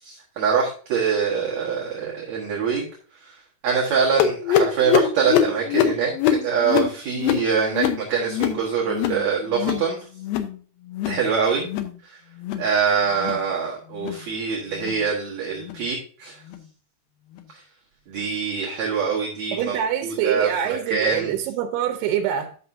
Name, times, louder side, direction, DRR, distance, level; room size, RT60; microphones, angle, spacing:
voice 1, 0.0-2.9 3.2-3.3 3.6-10.1 11.0-11.7 12.0-12.2 12.6-16.4 18.1-21.3, right 6 dB, 55° right, 2.3 m, -24 dB
sound 1, 4.2-9.2 9.5-9.9 10.2-10.6 10.9-11.2 11.6-12.0 12.4-12.7 13.1-13.4 13.9-14.2 14.8-15.0 15.6-15.8 16.5-16.6 17.4-17.5, left 9 dB, 75° left, 2.4 m, -23 dB
voice 2, 19.5-22.6, right 9 dB, 90° right, 2.8 m, -25 dB
11.0 x 6.6 x 2.6 m
omnidirectional pair, 4.6 m